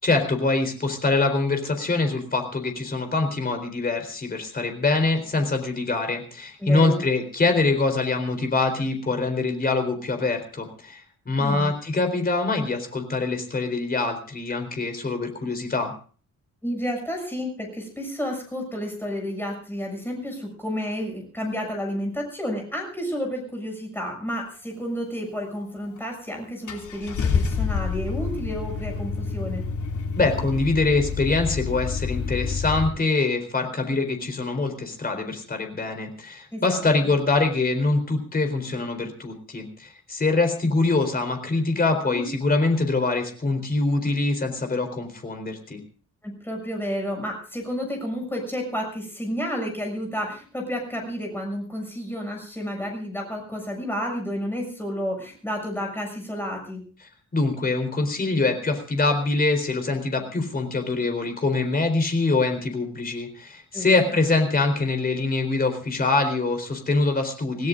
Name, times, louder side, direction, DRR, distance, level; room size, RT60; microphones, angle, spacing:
voice 1, 0.0-15.9 30.2-45.8 57.3-67.7, left 3 dB, 30° left, 5 dB, 4.0 m, -24 dB
voice 2, 6.6-7.0 11.4-11.7 16.6-29.6 36.5-36.8 42.1-42.3 46.2-56.8 63.7-63.9, equal, 5° left, 1 dB, 6.9 m, -31 dB
Car / Engine starting, 26.0-26.1 26.7-32.9, left 5 dB, 70° left, 3.0 m, -28 dB
26.5 x 17.0 x 2.5 m, 0.41 s
wide cardioid pair, 175°, 31 cm